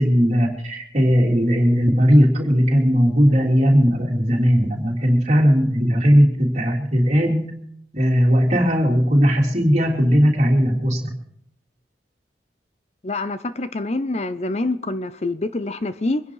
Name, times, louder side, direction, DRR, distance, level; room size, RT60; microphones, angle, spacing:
voice 1, 0.0-7.5 7.9-11.2, equal, 40° right, 0 dB, 3.2 m, -17 dB
voice 2, 13.0-16.2, left 2 dB, 35° left, 13 dB, 0.6 m, -26 dB
24.0 x 11.0 x 4.8 m, 0.71 s
head